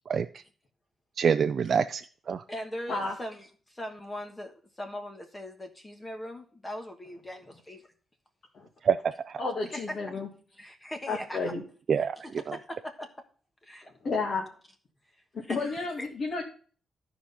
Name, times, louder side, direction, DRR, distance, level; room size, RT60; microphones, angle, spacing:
voice 1, 0.1-0.4 1.2-2.4 8.8-9.4 11.9-12.5, right 7 dB, 45° right, 8 dB, 0.4 m, -27 dB
voice 2, 2.5-7.8 9.7-10.2 10.6-11.5 11.9-12.1 12.5-13.1 13.6-13.9 15.4-16.1, equal, 15° left, 5 dB, 1.3 m, -40 dB
voice 3, 9.4-10.3 11.1-11.6 14.0-14.4 15.5-16.4, left 3 dB, 45° left, -1 dB, 2.1 m, -31 dB
13.0 x 5.0 x 5.6 m, 0.41 s
wide cardioid pair, 170°, 0 cm